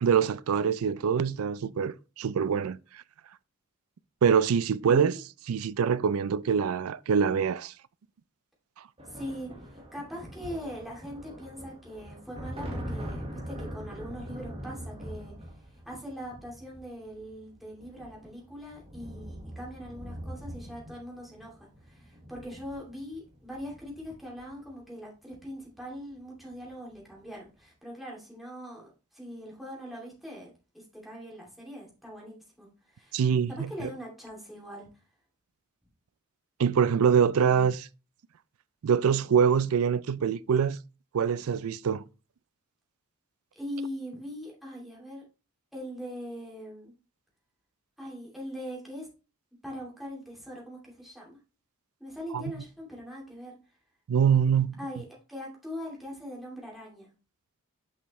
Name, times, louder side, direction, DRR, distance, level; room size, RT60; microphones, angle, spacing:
voice 1, 0.0-2.8 4.2-5.1 5.5-7.7 33.1-33.9 36.6-37.9 38.8-40.8 41.1-42.0 52.3-52.4 54.1-54.8, right 7 dB, 75° right, 0.4 m, -24 dB
voice 2, 4.9-5.2 9.1-33.2 33.5-34.9 43.6-45.3 45.7-46.9 48.0-49.1 49.6-51.4 52.0-53.6 54.8-57.1, equal, ahead, 2.6 m, -41 dB
sound 1, 9.0-24.7 25.9-26.1 26.4-27.1, equal, 25° right, 1.4 m, -42 dB
6.5 x 5.6 x 3.1 m
head